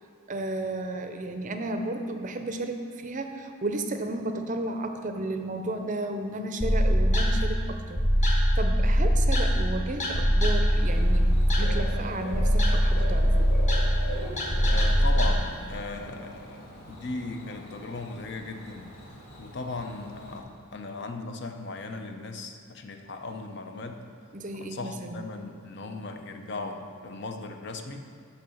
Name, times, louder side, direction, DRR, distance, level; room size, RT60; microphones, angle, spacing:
voice 1, 0.3-8.0 8.2-11.3 11.6-13.5 24.3-25.2, right 2 dB, 35° right, 6 dB, 0.5 m, -33 dB
sound 1, 6.6-15.3, equal, 35° left, 1.2 m, -23 dB
Bird / Cricket, 10.7-20.4, equal, 85° left, 2.2 m, -42 dB
voice 2, 14.6-18.9 19.4-24.1 24.6-28.1, left 3 dB, 50° left, 5 dB, 0.6 m, -37 dB
6.6 x 5.8 x 7.0 m, 2.2 s
head